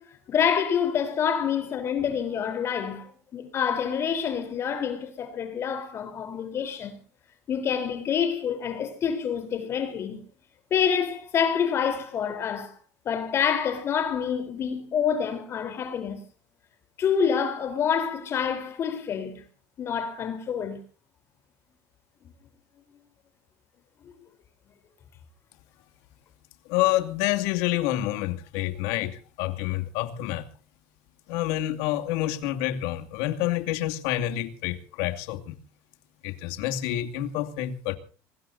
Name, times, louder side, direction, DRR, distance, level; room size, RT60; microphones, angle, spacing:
voice 1, 0.3-7.0 7.5-10.2 10.7-12.7 13.1-16.2 17.0-19.4 19.8-20.8, left 7 dB, 35° left, 3.8 m, -27 dB
voice 2, 26.7-30.5 31.3-35.6 36.2-38.0, left 14 dB, 80° left, 2.5 m, -28 dB
24.0 x 21.0 x 2.7 m
cardioid pair, 150°, 7 cm